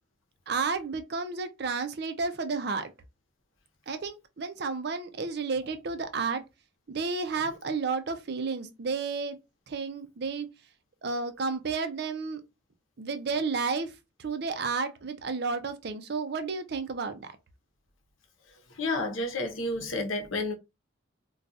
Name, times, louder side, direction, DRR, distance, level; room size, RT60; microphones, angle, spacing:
voice 1, 0.5-2.9 3.9-6.4 6.9-9.4 9.7-10.5 11.0-12.4 13.0-13.9 14.2-17.3, right 4 dB, 55° right, 0.5 m, -31 dB
voice 2, 18.8-20.5, left 2 dB, 85° left, 0.8 m, -30 dB
2.4 x 2.3 x 4.0 m
head